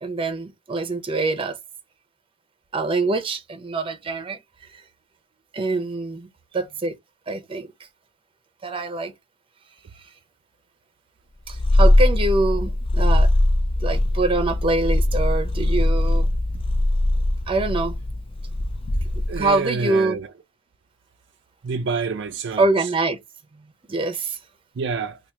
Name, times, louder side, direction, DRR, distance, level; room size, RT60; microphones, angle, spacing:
voice 1, 0.0-1.6 2.7-4.4 5.5-6.3 6.5-6.9 7.3-7.7 8.6-9.1 11.5-13.3 13.8-16.3 17.5-17.9 19.4-20.2 22.6-23.2 23.9-24.4, right 2 dB, 25° right, 0.7 m, -24 dB
Purr, 11.5-19.5, left 1 dB, 30° left, 0.4 m, -20 dB
voice 2, 19.3-20.3 21.6-22.6 24.8-25.2, right 5 dB, 60° right, 0.4 m, -27 dB
2.9 x 2.5 x 3.5 m
head